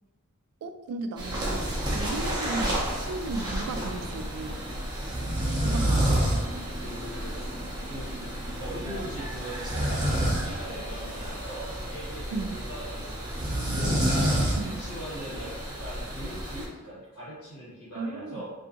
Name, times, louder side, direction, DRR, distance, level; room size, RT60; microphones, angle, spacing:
voice 1, 0.6-2.7 3.0-4.6 5.6-6.0 12.3-12.6 14.6-14.8 17.9-18.4, right 3 dB, 80° right, 12 dB, 0.3 m, -35 dB
sound 1, 1.2-16.7, right 1 dB, 20° right, 0.6 m, -29 dB
voice 2, 6.8-8.1 8.6-14.0 14.6-18.4, equal, 75° left, -9 dB, 1.3 m, -41 dB
2.6 x 2.5 x 2.4 m, 1.2 s
head